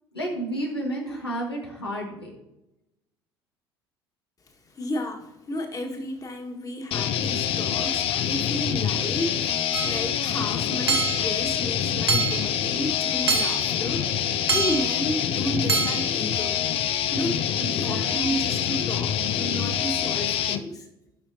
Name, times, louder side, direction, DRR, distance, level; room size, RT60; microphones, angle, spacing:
voice 1, 0.1-2.4 17.6-18.5, right 1 dB, 85° left, 1.9 m, -32 dB
voice 2, 4.6-16.6 17.1-17.5 17.7-20.9, equal, 25° left, 1.8 m, -32 dB
sound 1, 6.9-20.6, left 9 dB, 45° left, 0.6 m, -26 dB
Hammer / Chink clink, 9.7-10.1 10.9-11.3 12.1-12.5 13.3-13.7 14.5-14.9 15.7-16.1, right 5 dB, 85° right, 0.7 m, -25 dB
17.0 x 5.7 x 2.9 m
figure-of-eight pair, 60°, 13 cm